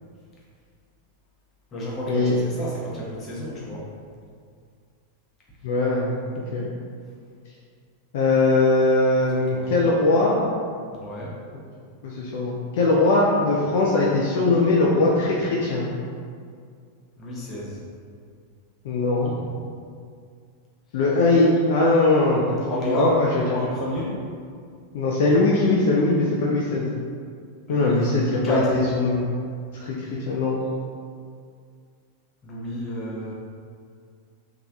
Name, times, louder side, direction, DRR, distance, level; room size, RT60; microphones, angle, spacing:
voice 1, 1.7-3.8 9.5-9.7 10.9-11.4 17.2-17.8 19.2-19.3 22.7-23.2 23.5-24.2 27.7-28.7 32.4-33.3, left 1 dB, 25° left, -5 dB, 0.7 m, -30 dB
voice 2, 5.6-6.1 6.5-6.7 8.1-10.4 12.0-15.9 18.8-19.3 20.9-23.6 24.9-26.9 27.7-29.2 29.7-30.6, left 2 dB, 55° left, -5 dB, 0.3 m, -21 dB
3.2 x 2.3 x 2.4 m, 2.2 s
figure-of-eight pair, 90°, 0 cm